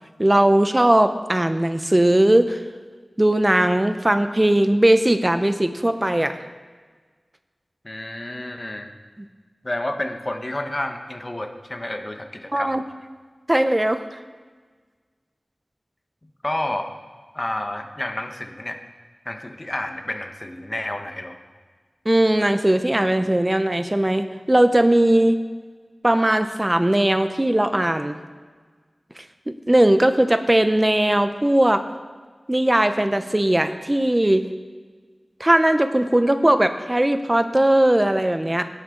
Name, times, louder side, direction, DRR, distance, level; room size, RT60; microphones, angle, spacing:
voice 1, 0.2-2.6 3.2-6.4 12.5-12.8 13.5-14.0 22.1-25.4 26.0-28.2 29.2-31.8 32.5-34.5 35.4-38.7, right 1 dB, 20° right, 9 dB, 0.7 m, -19 dB
voice 2, 7.8-8.9 9.6-12.8 16.4-16.9 17.3-18.8 19.2-21.4, left 1 dB, 30° left, 5 dB, 1.2 m, -30 dB
16.5 x 11.0 x 3.9 m, 1.5 s
wide cardioid pair, 60°, 0 cm